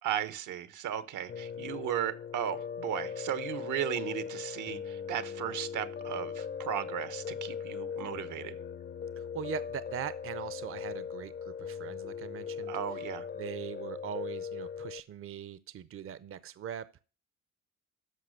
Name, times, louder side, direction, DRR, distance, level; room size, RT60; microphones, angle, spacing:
voice 1, 0.0-8.5 12.7-13.3, right 10 dB, 80° right, 1.1 m, -36 dB
Piano, 1.3-15.0, left 7 dB, 35° left, 0.5 m, -39 dB
voice 2, 9.2-12.8 13.3-17.0, right 9 dB, 45° right, 0.6 m, -41 dB
13.0 x 4.9 x 6.5 m
cardioid pair, 90°, 30 cm